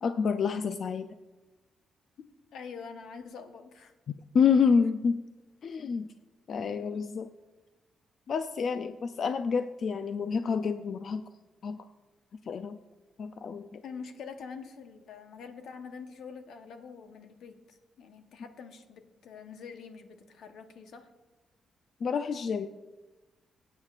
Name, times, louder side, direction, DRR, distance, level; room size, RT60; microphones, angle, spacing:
voice 1, 0.0-1.1 4.1-5.2 5.6-6.0 6.5-7.3 8.3-11.2 11.6-11.8 12.5-12.8 13.2-13.8 22.0-22.7, left 6 dB, 50° left, 9 dB, 0.4 m, -28 dB
voice 2, 2.5-3.9 13.8-21.1, left 5 dB, 75° left, 7 dB, 0.9 m, -45 dB
22.5 x 8.8 x 2.4 m, 1.1 s
wide cardioid pair, 165°, 0 cm